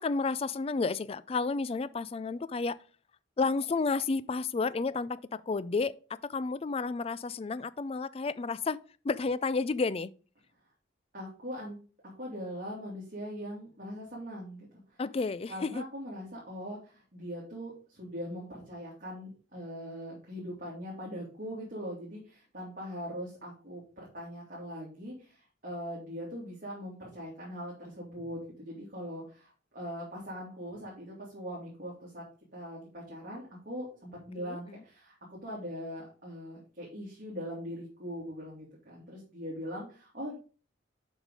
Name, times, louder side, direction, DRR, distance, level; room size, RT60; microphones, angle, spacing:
voice 1, 0.0-2.8 3.4-5.9 6.2-8.8 9.0-10.1 15.0-15.8 34.4-34.8, left 4 dB, 30° left, 0.4 m, -31 dB
voice 2, 11.1-11.8 12.0-14.7 15.5-32.2 32.5-40.4, equal, 45° right, 2.7 m, -41 dB
7.3 x 5.3 x 4.9 m
head